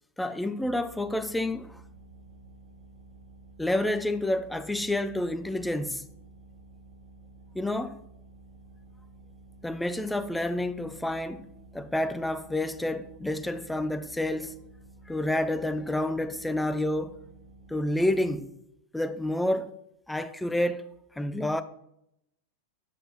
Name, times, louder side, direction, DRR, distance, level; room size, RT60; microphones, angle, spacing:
voice 1, 0.2-1.8 3.6-6.1 7.5-8.0 9.6-11.5 11.7-14.6 15.1-17.2 17.7-18.5 18.9-19.7 20.1-20.8 21.2-21.6, left 1 dB, 5° left, 0.6 m, -29 dB
sound 1, 0.6-18.4, right 2 dB, 75° right, 1.2 m, -52 dB
8.9 x 4.6 x 5.7 m
figure-of-eight pair, 90°, 0 cm